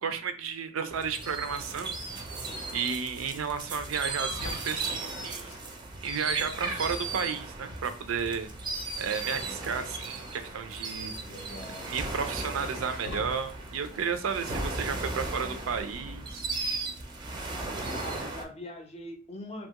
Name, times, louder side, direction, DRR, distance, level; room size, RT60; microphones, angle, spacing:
voice 1, 0.0-2.0 2.7-5.5 6.0-8.5 9.0-11.1 11.8-16.4, right 6 dB, 80° right, 9 dB, 0.4 m, -33 dB
sound 1, 0.9-18.4, right 3 dB, 20° right, 0.4 m, -36 dB
sound 2, 3.6-14.2 14.4-16.1, left 2 dB, 75° left, 0.7 m, -47 dB
voice 2, 11.3-12.0 17.8-19.7, left 1 dB, 30° left, 4 dB, 0.5 m, -42 dB
2.7 x 2.3 x 2.8 m, 0.38 s
head